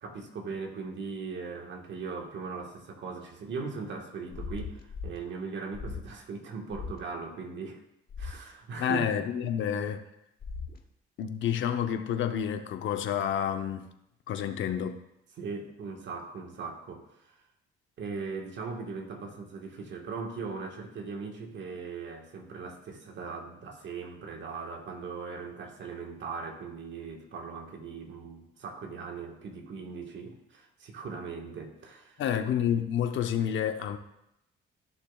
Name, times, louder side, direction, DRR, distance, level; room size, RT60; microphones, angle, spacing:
voice 1, 0.0-7.8 8.2-9.1 15.4-17.4 18.0-32.2, right 4 dB, 65° right, 1.5 m, -39 dB
sound 1, 4.3-5.2 5.7-6.1 6.7-7.0 8.1-8.4 10.4-10.8, left 4 dB, 50° left, 1.0 m, -38 dB
voice 2, 8.8-10.0 11.2-13.9 14.3-15.0 32.2-34.0, left 9 dB, 75° left, 0.8 m, -29 dB
14.5 x 6.8 x 2.4 m
cardioid pair, 90°, 20 cm